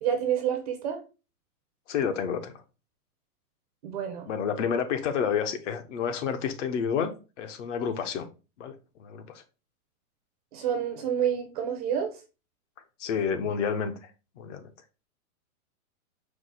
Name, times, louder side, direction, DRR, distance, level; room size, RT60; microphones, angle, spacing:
voice 1, 0.0-1.0 3.8-4.3 10.5-12.2, right 8 dB, 25° right, 4 dB, 0.5 m, -28 dB
voice 2, 1.9-2.5 4.3-7.1 7.4-8.3 8.6-9.4 13.0-13.9 14.4-14.7, left 7 dB, 55° left, 9 dB, 0.7 m, -29 dB
4.8 x 2.0 x 3.8 m, 0.32 s
hypercardioid pair, 150°, 45 cm